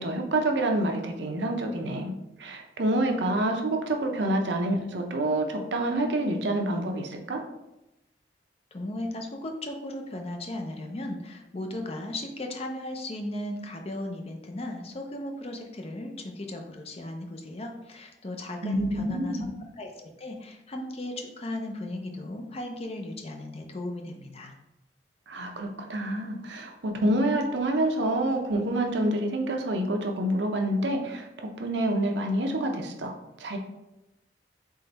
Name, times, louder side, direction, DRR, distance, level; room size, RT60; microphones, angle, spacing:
voice 1, 0.0-2.1 2.4-7.4 18.6-19.5 25.3-33.6, right 1 dB, 75° right, 3 dB, 0.7 m, -27 dB
voice 2, 8.7-24.5, left 1 dB, 35° left, 3 dB, 0.5 m, -36 dB
3.7 x 3.3 x 4.0 m, 0.93 s
head